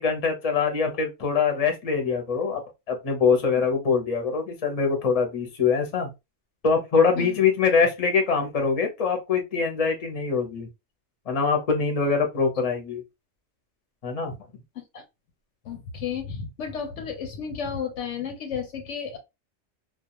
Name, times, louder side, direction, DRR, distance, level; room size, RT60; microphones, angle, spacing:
voice 1, 0.0-2.6 2.9-6.1 6.6-10.7 11.3-13.0 14.0-14.3, left 5 dB, 35° left, 0.6 m, -23 dB
voice 2, 15.6-19.2, left 7 dB, 70° left, 0.9 m, -33 dB
2.3 x 2.2 x 2.8 m
omnidirectional pair, 1.4 m